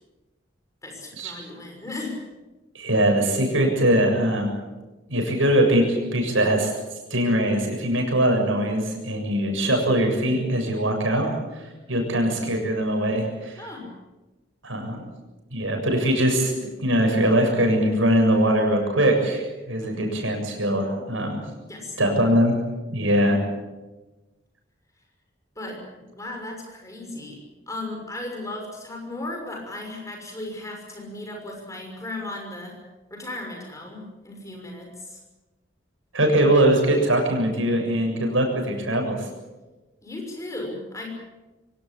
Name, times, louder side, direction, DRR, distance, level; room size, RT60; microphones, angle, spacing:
voice 1, 0.8-2.2 13.6-13.9 19.8-20.3 21.7-22.2 25.6-27.4 27.7-32.8 33.1-35.2 40.0-41.1, left 2 dB, 15° left, 1 dB, 6.2 m, -36 dB
voice 2, 2.7-4.5 5.1-6.7 7.1-13.7 14.6-15.0 15.5-16.5 16.8-21.4 22.0-22.5 22.9-23.4 36.1-39.3, right 1 dB, 85° right, 3 dB, 7.3 m, -22 dB
24.5 x 18.0 x 8.9 m, 1.1 s
head